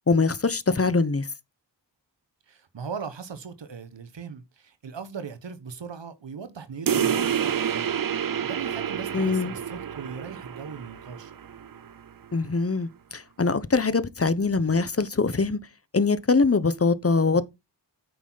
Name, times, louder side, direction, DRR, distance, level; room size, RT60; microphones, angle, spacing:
voice 1, 0.1-1.3 9.1-9.5 12.3-15.6 15.9-17.5, left 4 dB, 35° left, 1.0 m, -23 dB
voice 2, 2.5-11.3, right 6 dB, 85° right, 1.3 m, -39 dB
sound 1, 6.9-11.9, right 8 dB, 50° right, 0.6 m, -28 dB
9.0 x 6.1 x 4.0 m
wide cardioid pair, 50°, 42 cm